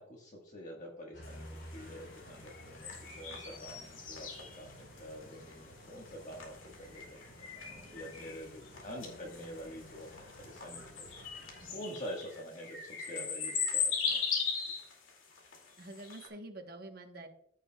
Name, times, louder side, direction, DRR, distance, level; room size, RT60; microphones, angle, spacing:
voice 1, 0.0-4.3 4.6-7.0 7.5-11.1 11.7-14.3, equal, 40° left, -1 dB, 1.5 m, -46 dB
sound 1, 1.1-11.7, equal, 65° left, 3.2 m, -53 dB
sound 2, 1.2-16.3, left 6 dB, 80° left, 2.2 m, -38 dB
voice 2, 15.8-17.3, right 2 dB, 50° right, 4 dB, 1.1 m, -47 dB
14.5 x 6.6 x 2.3 m, 0.67 s
head